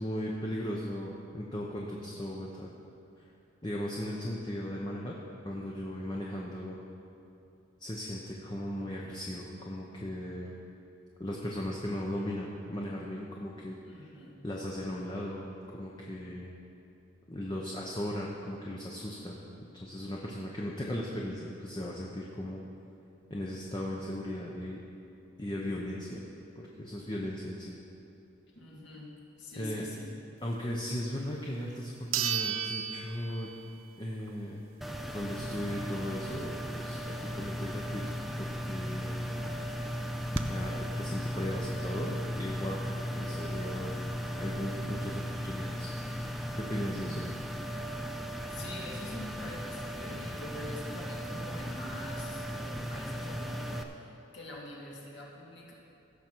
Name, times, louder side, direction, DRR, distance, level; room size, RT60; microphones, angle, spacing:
voice 1, 0.0-2.7 3.2-3.3 3.6-5.2 5.4-6.8 7.8-10.5 11.2-14.1 14.4-16.5 17.3-19.4 19.7-22.6 23.3-24.8 25.4-26.2 26.5-27.8 29.6-29.9 30.4-33.5 34.0-34.6 35.1-39.3 40.5-42.8 43.1-44.0 44.3-45.9 46.6-47.2, left 1 dB, 25° left, -3 dB, 0.8 m, -37 dB
voice 2, 13.8-14.4 28.5-30.2 47.0-47.5 48.2-55.7, left 1 dB, 65° left, -4 dB, 1.9 m, -45 dB
sound 1, 31.3-31.4 32.1-33.9 34.3-34.4 39.0-39.1 39.3-39.4 40.0-40.4, right 8 dB, 90° right, 0.6 m, -34 dB
sound 2, 34.8-53.8, equal, ahead, 0.4 m, -36 dB
16.5 x 6.4 x 4.6 m, 2.7 s
head